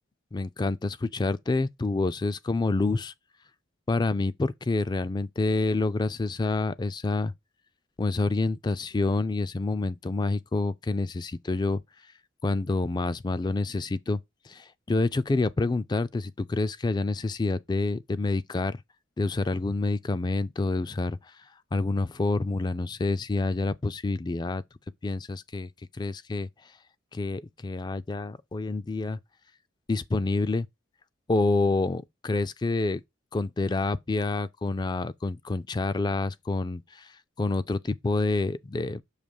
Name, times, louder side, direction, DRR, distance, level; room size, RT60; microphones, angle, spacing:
voice 1, 0.3-3.1 3.9-7.3 8.0-11.8 12.4-14.2 14.4-18.8 19.2-21.3 21.7-24.6 25.0-26.5 27.1-29.2 29.9-30.7 31.3-33.0 33.3-39.0, left 3 dB, 20° left, 0.3 m, -28 dB
6.5 x 2.9 x 5.3 m
head